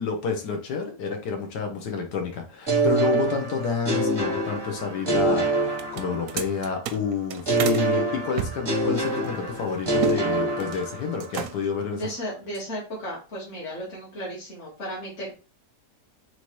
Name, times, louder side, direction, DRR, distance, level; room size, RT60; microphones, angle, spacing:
voice 1, 0.0-12.0, left 6 dB, 80° left, 4 dB, 1.5 m, -29 dB
sound 1, 2.7-6.6 7.4-11.3, right 2 dB, 25° right, 0.5 m, -25 dB
sound 2, 5.7-7.8 8.3-10.2 10.5-10.9 11.2-11.8, right 8 dB, 70° right, 0.9 m, -33 dB
voice 2, 11.9-15.3, equal, 45° left, -6 dB, 1.6 m, -34 dB
3.9 x 3.1 x 3.0 m, 0.33 s
omnidirectional pair, 1.8 m